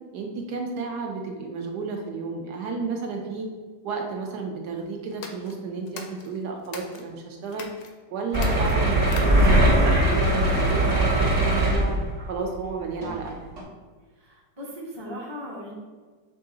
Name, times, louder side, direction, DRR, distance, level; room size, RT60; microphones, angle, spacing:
voice 1, 0.1-3.5 3.8-7.7 8.1-11.9 12.3-13.3, right 4 dB, 75° right, 2 dB, 1.1 m, -32 dB
sound 1, 5.1-7.1 7.5-7.9 8.3-9.7, left 5 dB, 90° left, 1.3 m, -41 dB
sound 2, 8.3-12.2 13.0-13.2 13.6-13.7, right 1 dB, 45° right, 0.9 m, -20 dB
voice 2, 14.2-15.7, equal, 25° right, -4 dB, 0.7 m, -38 dB
5.5 x 2.5 x 3.7 m, 1.4 s
omnidirectional pair, 1.9 m